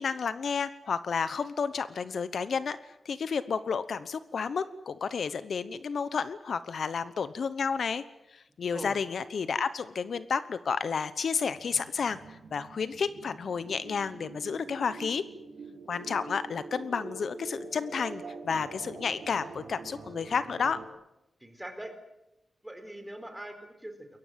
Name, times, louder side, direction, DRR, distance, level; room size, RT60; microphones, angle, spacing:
voice 1, 0.0-2.8 3.0-8.0 8.3-15.2 15.9-20.8, left 6 dB, 60° left, 14 dB, 1.0 m, -31 dB
sound 1, 11.5-20.9, right 4 dB, 80° right, 4.9 m, -45 dB
voice 2, 21.4-21.9 22.6-24.1, right 1 dB, 5° right, 7 dB, 4.0 m, -42 dB
28.5 x 22.0 x 7.6 m, 0.88 s
wide cardioid pair, 175°, 0 cm